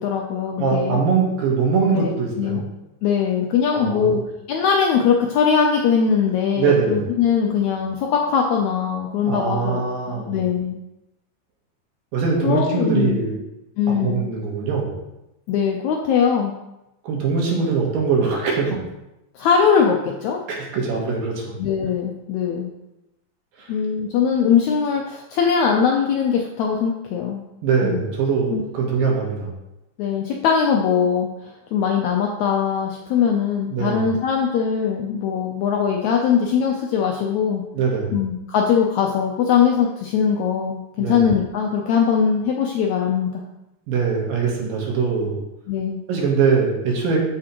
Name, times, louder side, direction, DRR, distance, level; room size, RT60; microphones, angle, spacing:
voice 1, 0.0-1.0 1.9-2.1 2.4-2.6 3.0-4.2 4.5-10.8 12.4-13.2 13.8-14.3 15.5-16.5 19.4-20.4 21.6-22.7 23.7-27.4 27.8-28.0 28.5-28.6 30.0-37.6 38.1-43.4 45.7-46.0, left 7 dB, 80° left, 1 dB, 1.7 m, -21 dB
voice 2, 0.6-2.6 3.7-4.2 6.6-7.0 9.3-10.4 12.1-13.3 13.9-14.9 17.0-18.8 20.5-21.5 23.6-23.7 27.6-29.5 33.7-34.0 37.7-38.2 41.0-41.2 43.9-45.4 46.1-47.2, right 5 dB, 80° right, -1 dB, 3.1 m, -22 dB
7.4 x 7.2 x 3.0 m, 0.93 s
omnidirectional pair, 3.9 m